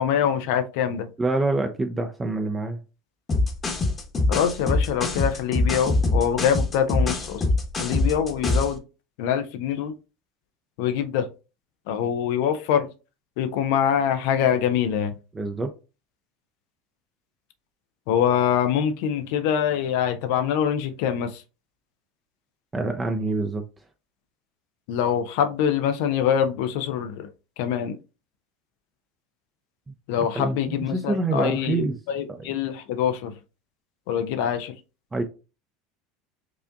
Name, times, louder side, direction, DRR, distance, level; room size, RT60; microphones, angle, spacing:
voice 1, 0.0-1.1 4.3-7.4 7.8-8.8 9.2-9.9 10.8-11.3 11.9-12.9 13.4-15.1 18.1-21.4 24.9-27.3 27.6-28.0 30.1-33.3 34.1-34.7, left 8 dB, 65° left, 0.5 m, -24 dB
voice 2, 1.2-2.8 15.3-15.7 22.7-23.6 30.2-31.9 32.3-32.4 35.1-35.2, right 2 dB, 20° right, 0.5 m, -26 dB
sound 1, 3.3-8.8, left 2 dB, 30° left, 1.0 m, -23 dB
4.8 x 2.5 x 2.4 m
hypercardioid pair, 80°, 0 cm